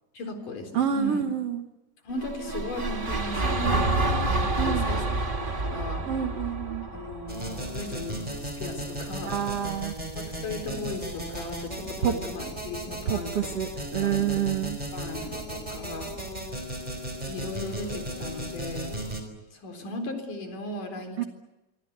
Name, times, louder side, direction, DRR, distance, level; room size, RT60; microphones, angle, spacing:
voice 1, 0.2-1.3 2.0-5.0 5.5-6.1 6.9-9.4 10.2-13.5 14.0-14.3 14.9-16.2 17.3-19.0 19.5-21.3, left 1 dB, 60° left, 5 dB, 5.4 m, -37 dB
voice 2, 0.7-1.6 4.6-4.9 6.1-6.9 9.2-9.9 12.0-12.1 13.0-14.8 21.2-21.3, right 8 dB, 65° right, 7 dB, 1.5 m, -28 dB
sound 1, 2.1-8.3, right 2 dB, 35° right, 0.8 m, -28 dB
sound 2, 7.3-19.2, right 1 dB, 10° right, 4.3 m, -35 dB
25.5 x 24.5 x 8.1 m, 1.1 s
omnidirectional pair, 4.3 m